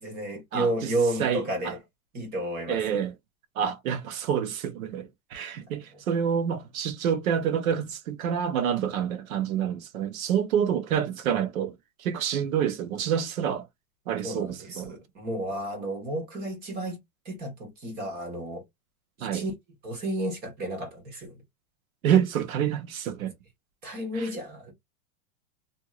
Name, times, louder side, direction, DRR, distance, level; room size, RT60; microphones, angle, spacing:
voice 1, 0.0-1.8 2.1-3.0 5.9-6.0 14.2-17.0 17.2-18.6 19.2-19.5 19.8-21.4 23.8-24.7, right 1 dB, 20° right, 1.3 m, -32 dB
voice 2, 0.5-0.9 1.2-1.7 2.7-3.1 3.6-13.7 14.1-14.9 19.2-19.4 22.0-23.3 24.1-24.3, right 8 dB, 80° right, 1.0 m, -28 dB
2.9 x 2.7 x 2.4 m
supercardioid pair, 170°, 41 cm